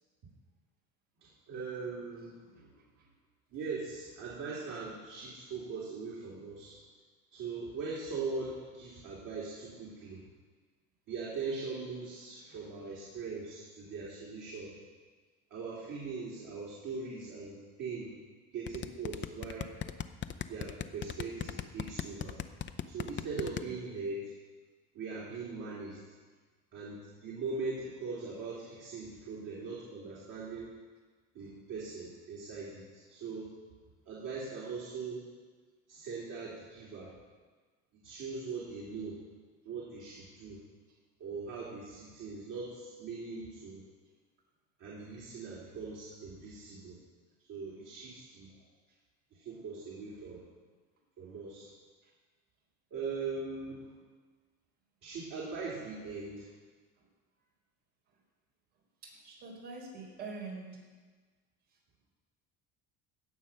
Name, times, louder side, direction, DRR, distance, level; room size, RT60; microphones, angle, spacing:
voice 1, 1.2-2.5 3.5-6.8 7.3-10.3 11.1-14.8 15.5-18.2 18.5-19.7 20.5-22.5 22.9-24.3 24.9-26.0 26.7-30.7 31.3-33.5 34.1-35.2 35.9-37.1 38.0-39.2 39.7-40.6 41.2-43.8 44.8-47.0 47.5-48.5 49.3-50.5 51.2-51.7 52.9-54.0 55.0-56.5, right 4 dB, 60° right, -7 dB, 3.4 m, -40 dB
voice 2, 2.5-3.1 12.5-12.7 23.7-23.8 52.0-52.1 57.0-57.1 59.0-60.8, right 4 dB, 85° right, -3 dB, 4.3 m, -46 dB
sound 1, 18.7-23.6, left 9 dB, 35° left, 0.6 m, -37 dB
17.0 x 6.4 x 5.7 m, 1.4 s
supercardioid pair, 80°, 35 cm